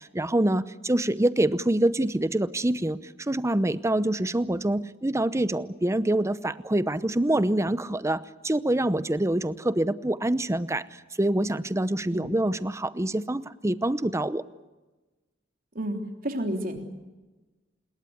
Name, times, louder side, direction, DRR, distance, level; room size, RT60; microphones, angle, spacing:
voice 1, 0.0-10.9 11.2-14.4, right 1 dB, 15° right, 15 dB, 0.8 m, -26 dB
voice 2, 15.7-16.9, right 1 dB, 50° right, 4 dB, 3.4 m, -31 dB
27.0 x 21.5 x 8.1 m, 1.2 s
head